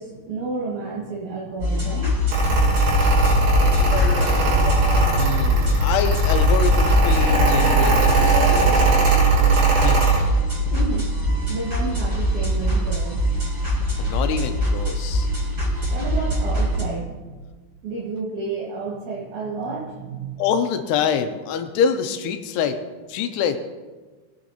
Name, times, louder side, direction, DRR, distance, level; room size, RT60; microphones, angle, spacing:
voice 1, 0.0-2.2 10.4-11.2 11.5-13.5 15.9-17.3 17.8-20.4, right 4 dB, 55° right, -6 dB, 2.7 m, -31 dB
sound 1, 1.6-16.8, equal, 25° right, 4.5 m, -23 dB
Mechanical fan, 2.3-10.2, right 2 dB, 70° right, 5.3 m, -19 dB
Speech, 3.3-9.1, left 4 dB, 55° left, 2.9 m, -36 dB
voice 2, 5.2-10.1 14.0-15.3 20.4-22.8 23.1-23.6, left 7 dB, 85° left, 7 dB, 2.7 m, -26 dB
22.0 x 9.2 x 2.9 m, 1.3 s
omnidirectional pair, 4.9 m